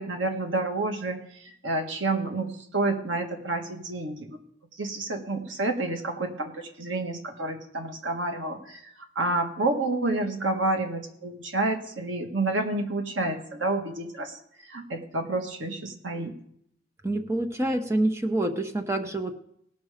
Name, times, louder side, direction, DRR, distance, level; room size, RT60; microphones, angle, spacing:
voice 1, 0.0-4.4 4.8-14.4 14.7-16.3, right 2 dB, 80° right, 4 dB, 1.7 m, -29 dB
voice 2, 17.0-19.3, right 1 dB, 15° right, 5 dB, 0.9 m, -27 dB
18.5 x 6.2 x 5.0 m, 0.71 s
head